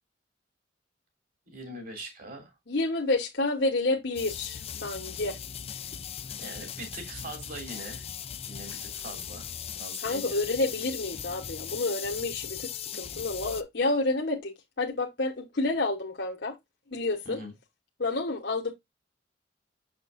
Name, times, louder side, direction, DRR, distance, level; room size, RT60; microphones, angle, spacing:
voice 1, 1.5-2.6 6.3-8.1 8.5-9.5 9.8-10.5 17.2-17.5, right 1 dB, 50° right, 3.3 m, -42 dB
voice 2, 2.7-5.4 10.0-16.5 16.9-17.4 18.0-18.7, left 2 dB, 60° left, 1.1 m, -29 dB
sound 1, 4.2-13.6, left 9 dB, 35° left, 0.5 m, -38 dB
6.6 x 6.0 x 2.5 m
head